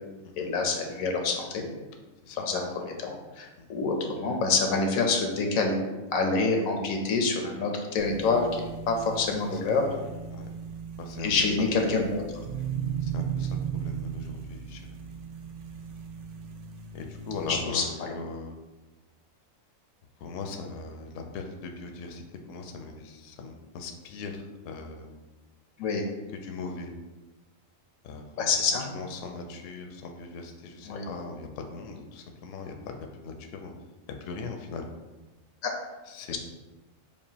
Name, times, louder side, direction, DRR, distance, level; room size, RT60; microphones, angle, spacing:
voice 1, 0.4-1.6 2.3-5.8 6.1-9.8 11.2-12.2 17.5-18.1 25.8-26.0 28.4-28.8 30.9-31.0 35.6-35.7 36.3-36.4, left 4 dB, 90° left, 2 dB, 1.1 m, -27 dB
sound 1, 8.0-17.6, right 7 dB, 70° right, 0.9 m, -36 dB
voice 2, 9.4-10.0 10.3-10.5 11.0-11.7 13.0-14.8 16.9-18.6 20.2-22.2 22.5-25.1 26.3-26.9 28.0-28.5 28.9-33.0 33.2-33.7 34.2-34.9 36.1-36.3, left 4 dB, 70° left, 3 dB, 0.9 m, -40 dB
7.1 x 2.4 x 2.8 m, 1.1 s
omnidirectional pair, 1.4 m